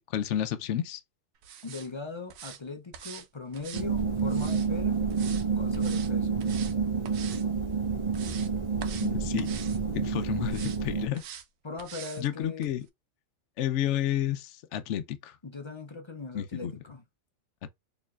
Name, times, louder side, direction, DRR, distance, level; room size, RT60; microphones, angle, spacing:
voice 1, 0.1-1.0 9.0-9.5 9.9-11.2 12.2-12.8 13.6-15.3 16.3-16.7, left 11 dB, 70° left, 0.9 m, -31 dB
sound 1, 1.4-1.9 2.3-2.6 2.9-3.3 3.5-4.7 5.1-5.5 5.7-6.1 6.4-6.8 7.0-7.4 7.9-8.5 8.8-9.1 9.4-9.8 10.5-10.8 11.1-11.5 11.8-12.2 12.6-12.7, right 9 dB, 90° right, 1.1 m, -44 dB
voice 2, 1.6-5.1 5.6-6.4 11.6-12.7 15.4-17.0, left 3 dB, 35° left, 0.5 m, -40 dB
sound 2, 3.7-11.1, right 5 dB, 35° right, 0.8 m, -29 dB
4.5 x 3.1 x 2.4 m
omnidirectional pair, 1.4 m